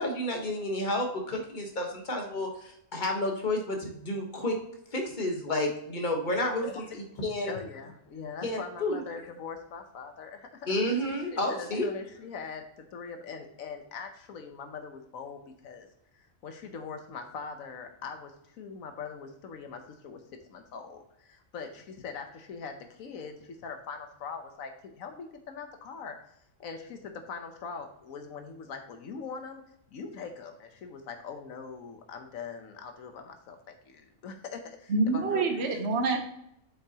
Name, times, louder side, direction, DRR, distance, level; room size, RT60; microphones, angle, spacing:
voice 1, 0.0-4.6 4.9-6.7 6.9-7.6 8.4-9.0 10.7-11.9, left 1 dB, 35° left, 2 dB, 1.4 m, -30 dB
voice 2, 6.3-6.9 7.4-10.7 11.3-12.6 12.9-15.9 16.4-20.2 20.5-26.2 26.6-29.6 29.9-35.7, left 5 dB, 90° left, 5 dB, 1.3 m, -42 dB
voice 3, 34.9-36.2, right 3 dB, 55° right, 3 dB, 1.2 m, -26 dB
8.2 x 5.8 x 2.9 m, 0.75 s
omnidirectional pair, 1.4 m